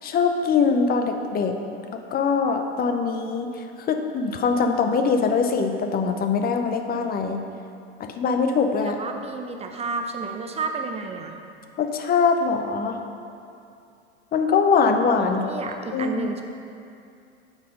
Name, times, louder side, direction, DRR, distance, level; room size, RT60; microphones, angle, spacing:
voice 1, 0.0-1.6 1.9-3.5 3.9-7.4 8.0-9.0 11.8-13.0 14.3-15.4 15.9-16.3, left 5 dB, 25° left, 5 dB, 0.6 m, -22 dB
voice 2, 8.8-11.4 15.2-16.4, right 4 dB, 20° right, 4 dB, 0.6 m, -31 dB
7.9 x 4.7 x 5.4 m, 2.5 s
hypercardioid pair, 90°, 35 cm